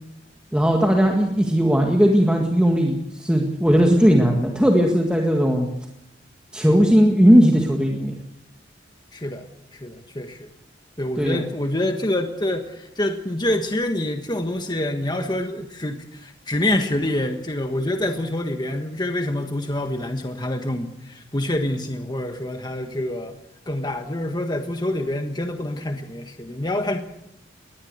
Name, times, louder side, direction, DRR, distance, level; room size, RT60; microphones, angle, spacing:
voice 1, 0.5-5.7 6.5-8.1 11.2-11.4, equal, 5° right, 1 dB, 1.9 m, -17 dB
voice 2, 9.1-9.5 9.7-10.5 11.0-23.4 23.7-27.0, left 1 dB, 25° left, 5 dB, 1.5 m, -26 dB
21.5 x 18.5 x 8.0 m, 0.83 s
head